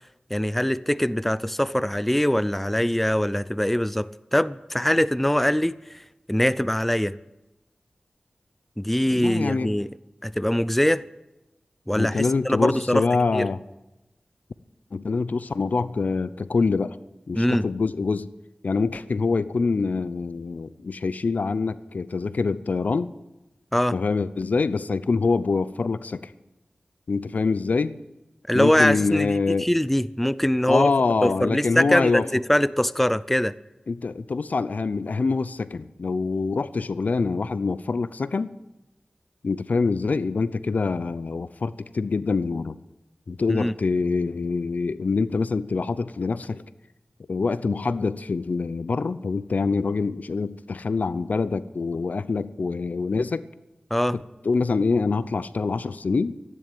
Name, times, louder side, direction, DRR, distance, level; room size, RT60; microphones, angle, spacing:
voice 1, 0.3-5.8 6.3-7.2 8.8-9.9 10.2-11.1 11.9-13.1 13.3-13.5 17.3-17.7 23.7-24.0 28.5-30.9 31.2-33.6 43.5-43.7 53.9-54.2, equal, 5° left, 0.5 m, -22 dB
voice 2, 9.1-9.7 12.0-13.6 14.9-17.0 17.3-18.3 18.6-23.1 23.9-26.3 27.1-28.0 28.5-29.7 30.7-32.3 33.9-38.6 39.4-42.8 43.3-46.6 47.3-53.5 54.1-56.4, left 4 dB, 75° left, 0.6 m, -25 dB
14.0 x 11.0 x 8.9 m
wide cardioid pair, 55°, 3 cm